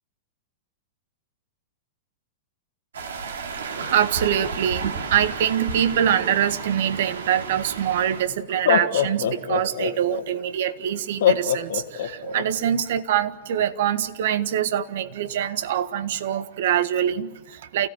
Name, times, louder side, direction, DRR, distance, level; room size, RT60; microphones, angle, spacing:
sound 1, 2.9-8.3, right 4 dB, 80° right, 2.6 m, -32 dB
voice 1, 3.5-17.9, right 10 dB, 65° right, 11 dB, 1.6 m, -24 dB
Laughter, 7.8-7.9 8.5-10.2 11.2-12.4, left 10 dB, 70° left, 2.0 m, -22 dB
29.0 x 17.0 x 9.4 m, 1.1 s
hypercardioid pair, 110°, 0 cm